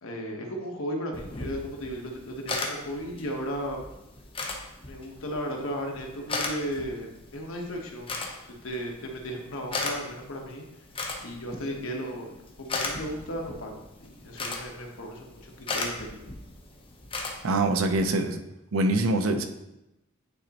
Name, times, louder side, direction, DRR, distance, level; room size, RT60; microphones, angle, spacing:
voice 1, 0.0-3.8 4.9-8.2 8.6-10.8 11.2-12.3 12.6-16.3, equal, 75° left, 1 dB, 1.1 m, -35 dB
sound 1, 1.1-18.0, left 3 dB, 25° left, 0.8 m, -37 dB
voice 2, 17.4-18.4 18.7-19.5, right 2 dB, 85° right, 7 dB, 0.6 m, -24 dB
9.1 x 4.0 x 2.9 m, 0.92 s
head